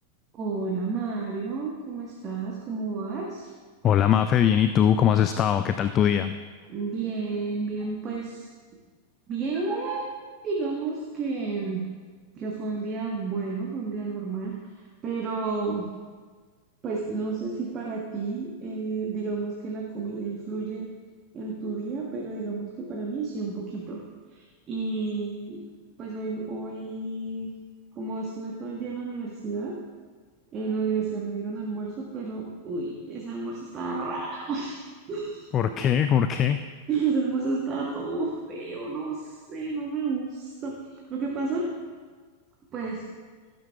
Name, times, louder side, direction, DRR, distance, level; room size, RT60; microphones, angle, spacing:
voice 1, 0.3-3.5 6.7-8.5 9.3-10.2 10.4-11.8 12.3-15.9 16.8-20.9 21.3-24.0 24.3-25.6 26.0-27.5 27.9-29.8 30.5-35.8 36.9-41.7 42.7-43.0, right 4 dB, 30° right, -1 dB, 1.3 m, -31 dB
voice 2, 3.8-6.3 35.5-36.6, left 9 dB, 30° left, 10 dB, 0.4 m, -21 dB
16.5 x 9.2 x 2.4 m, 1.5 s
figure-of-eight pair, 90°, 0 cm